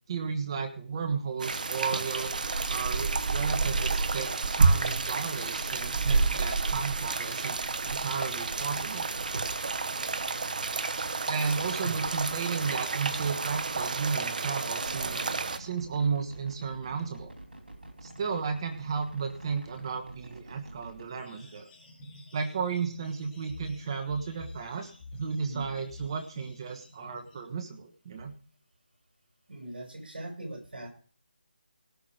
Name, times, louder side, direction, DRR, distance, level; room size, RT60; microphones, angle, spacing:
voice 1, 0.1-2.3 2.7-7.6 7.8-9.1 11.3-15.2 15.6-17.3 18.0-21.7 22.3-28.3, right 5 dB, 30° right, 6 dB, 1.3 m, -33 dB
sound 1, 1.4-15.6, right 4 dB, 55° right, 0.9 m, -29 dB
sound 2, 14.9-21.1, right 1 dB, 90° right, 3.1 m, -48 dB
sound 3, 21.2-27.4, left 2 dB, 15° left, 4.0 m, -50 dB
voice 2, 25.4-25.7 29.5-30.9, right 1 dB, 70° right, 3 dB, 5.7 m, -40 dB
18.0 x 6.1 x 4.9 m, 0.42 s
figure-of-eight pair, 165°, 5 cm